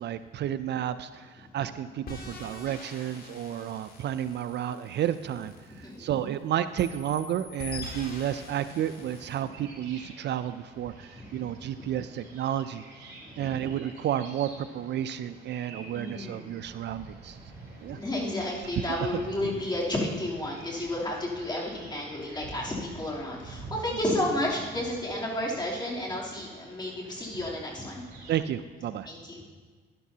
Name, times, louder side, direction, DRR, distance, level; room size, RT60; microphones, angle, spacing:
voice 1, 0.0-12.8 13.4-17.4 17.8-18.0 28.3-29.1, right 10 dB, 60° right, 13 dB, 0.4 m, -31 dB
sound 1, 2.1-6.4 6.8-9.5, left 3 dB, 50° left, 2.0 m, -44 dB
sound 2, 9.0-28.4, right 3 dB, 90° right, 3.5 m, -48 dB
voice 2, 13.2-13.7 15.9-16.4 17.9-28.0 29.1-29.5, left 1 dB, 20° left, -5 dB, 3.0 m, -32 dB
12.0 x 11.0 x 2.8 m, 1.5 s
cardioid pair, 90°, 20 cm